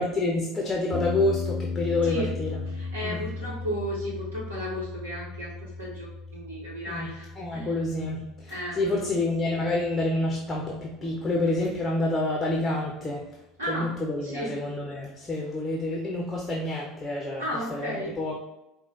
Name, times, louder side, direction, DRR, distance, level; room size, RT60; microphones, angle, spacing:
voice 1, 0.0-2.6 3.0-3.3 6.9-13.3 13.7-17.4 17.7-18.3, left 2 dB, 15° left, -1 dB, 0.8 m, -28 dB
sound 1, 0.9-11.1, left 4 dB, 60° left, 0.3 m, -37 dB
voice 2, 2.7-6.1 6.3-7.7 8.5-9.1 13.6-13.9 14.2-14.5 17.4-18.2, equal, 75° right, -4 dB, 1.0 m, -34 dB
4.7 x 2.2 x 4.1 m, 0.91 s
figure-of-eight pair, 70°, 0 cm